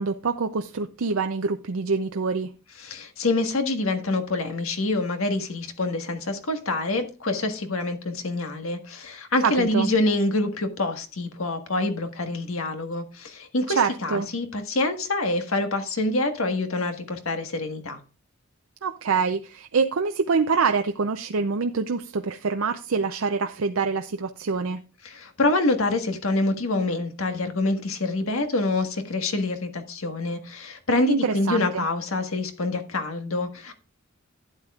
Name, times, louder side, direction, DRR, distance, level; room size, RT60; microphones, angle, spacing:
voice 1, 0.0-2.5 9.4-9.9 13.7-14.3 18.8-24.8 31.1-31.9, right 5 dB, 80° right, 0.6 m, -25 dB
voice 2, 2.8-18.0 25.0-33.7, left 2 dB, 85° left, 1.6 m, -26 dB
12.0 x 9.0 x 2.4 m
head